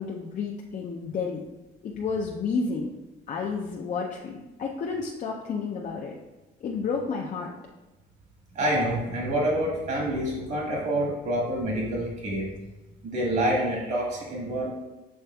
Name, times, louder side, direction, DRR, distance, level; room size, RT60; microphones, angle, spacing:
voice 1, 0.0-1.4 1.8-2.9 3.3-6.1 6.6-7.5, left 5 dB, 45° left, -1 dB, 0.5 m, -31 dB
voice 2, 8.5-12.5 13.0-14.7, right 1 dB, 60° right, -3 dB, 1.4 m, -27 dB
6.5 x 3.3 x 2.3 m, 1.1 s
cardioid pair, 110°, 17 cm